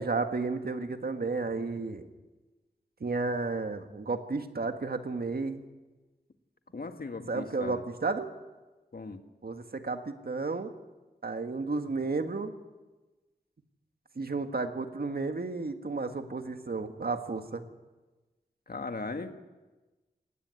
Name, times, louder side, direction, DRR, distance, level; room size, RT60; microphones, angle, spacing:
voice 1, 0.0-2.1 3.0-5.6 7.3-8.3 9.4-10.7 11.2-12.5 14.2-17.6, right 3 dB, 65° right, 7 dB, 1.7 m, -32 dB
voice 2, 6.7-7.8 8.9-9.2 18.7-19.4, left 3 dB, 60° left, 7 dB, 1.7 m, -38 dB
18.5 x 16.0 x 9.7 m, 1.2 s
wide cardioid pair, 60°, 17 cm